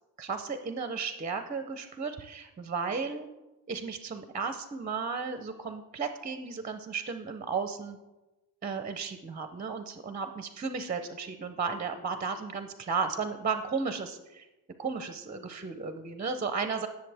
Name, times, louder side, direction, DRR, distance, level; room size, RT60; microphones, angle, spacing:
voice 1, 0.2-3.3 3.7-8.0 8.6-14.5 14.8-16.9, right 5 dB, 20° right, 8 dB, 0.5 m, -34 dB
18.5 x 6.8 x 3.4 m, 1.1 s
cardioid pair, 145°, 41 cm